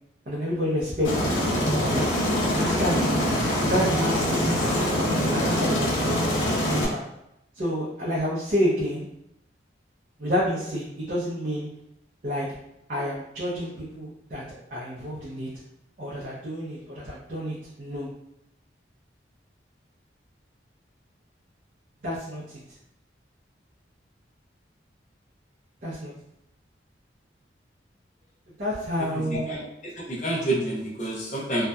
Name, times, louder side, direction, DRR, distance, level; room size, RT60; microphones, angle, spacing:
voice 1, 0.3-2.1 2.5-3.0 3.6-4.7 5.3-6.2 6.6-7.0 7.5-9.1 10.2-11.7 12.2-12.5 12.9-14.4 14.7-15.5 16.0-18.1 22.0-22.6 25.8-26.1 28.6-29.5, equal, 45° right, -8 dB, 0.5 m, -29 dB
Aircraft, 1.0-6.8, left 1 dB, 85° left, 0.6 m, -24 dB
voice 2, 29.1-31.7, right 1 dB, 40° left, -4 dB, 0.7 m, -29 dB
2.6 x 2.2 x 2.2 m, 0.82 s
head